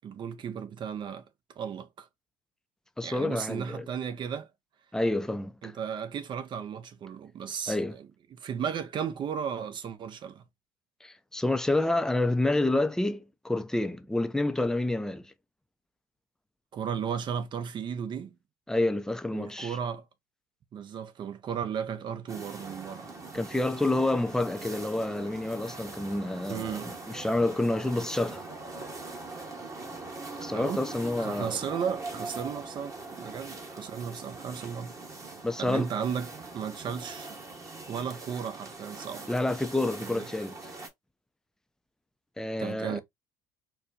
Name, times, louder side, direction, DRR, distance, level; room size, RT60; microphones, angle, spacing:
voice 1, 0.0-1.2 1.6-2.1 3.0-4.5 5.6-10.4 16.7-18.3 19.3-20.0 20.7-23.1 26.5-26.9 30.5-30.8 31.2-34.9 35.6-37.4 37.9-39.3 40.0-40.3 42.6-43.0, right 7 dB, 45° right, 0.7 m, -35 dB
voice 2, 3.0-3.9 4.9-5.7 7.7-8.0 11.0-15.3 18.7-19.8 23.3-28.5 30.4-31.6 35.4-35.9 39.3-40.7 42.4-43.0, left 2 dB, 5° left, 0.5 m, -28 dB
sound 1, 22.3-40.9, right 3 dB, 30° right, 1.3 m, -42 dB
4.2 x 2.2 x 2.6 m
supercardioid pair, 80°, 11 cm